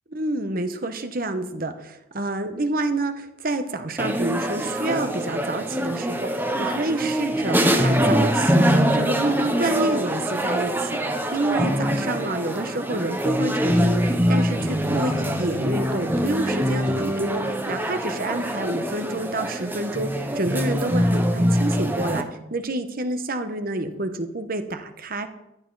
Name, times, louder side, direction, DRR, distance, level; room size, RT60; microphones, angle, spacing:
voice 1, 0.1-20.1 20.3-25.3, right 2 dB, 45° right, 8 dB, 1.1 m, -28 dB
sound 1, 4.0-22.2, equal, 10° right, 0.9 m, -23 dB
14.5 x 11.5 x 4.1 m, 0.89 s
head